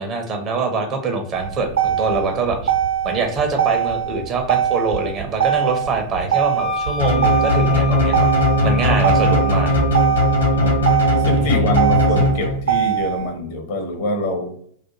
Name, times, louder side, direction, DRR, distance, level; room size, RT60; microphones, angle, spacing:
voice 1, 0.0-2.6 3.0-8.3 8.6-9.7 11.4-11.7, right 3 dB, 30° right, 4 dB, 0.6 m, -24 dB
Motor vehicle (road), 1.3-13.3, right 10 dB, 70° right, 0.7 m, -22 dB
Wind instrument woodwind instrument, 6.6-11.1, left 10 dB, 15° left, 0.4 m, -30 dB
sound 1, 7.0-12.8, left 1 dB, 75° left, 0.9 m, -18 dB
voice 2, 11.1-14.5, equal, 50° left, 4 dB, 0.6 m, -25 dB
2.4 x 2.2 x 2.8 m, 0.64 s
figure-of-eight pair, 90°, 0 cm